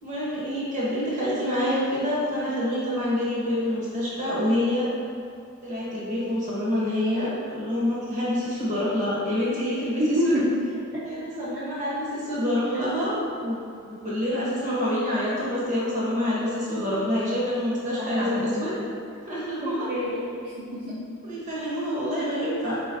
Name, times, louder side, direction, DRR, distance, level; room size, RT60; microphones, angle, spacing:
voice 1, 0.0-4.9 5.6-10.4 11.0-13.1 13.4-13.6 13.9-18.7 19.3-19.9 21.2-22.8, left 1 dB, 40° right, -7 dB, 1.1 m, -27 dB
voice 2, 10.0-10.5 18.0-18.8 19.6-21.0, left 1 dB, 55° right, -11 dB, 0.8 m, -27 dB
4.0 x 3.9 x 2.7 m, 2.4 s
head